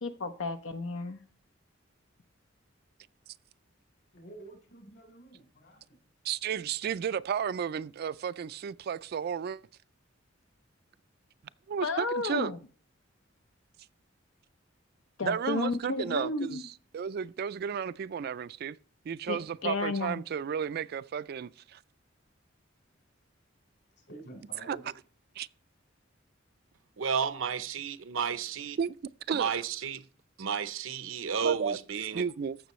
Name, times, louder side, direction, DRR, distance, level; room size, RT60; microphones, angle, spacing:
voice 1, 0.0-1.2 11.8-12.6 15.2-16.6 19.3-20.2, left 3 dB, 80° left, 0.7 m, -32 dB
voice 2, 4.1-6.0 24.0-24.9, right 2 dB, 60° left, 4.0 m, -49 dB
voice 3, 6.2-9.6 11.7-12.5 15.2-18.8 19.0-21.8 24.7-24.8 25.4-25.5 28.8-29.0 29.3-29.6 31.4-31.8 32.1-32.6, right 7 dB, 50° right, 0.3 m, -33 dB
voice 4, 27.0-28.8 29.3-30.0 30.4-32.2, right 6 dB, 85° right, 0.7 m, -32 dB
14.5 x 6.1 x 3.1 m
head